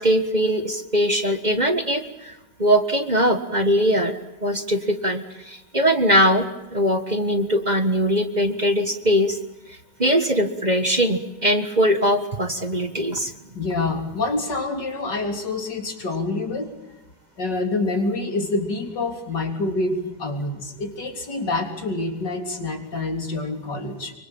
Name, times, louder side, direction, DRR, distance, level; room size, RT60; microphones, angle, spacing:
voice 1, 0.0-9.4 9.7-13.3, equal, 25° right, 9 dB, 1.6 m, -21 dB
voice 2, 13.5-16.7 17.4-24.1, left 2 dB, 85° left, 5 dB, 4.2 m, -27 dB
26.0 x 24.0 x 8.8 m, 0.99 s
omnidirectional pair, 1.8 m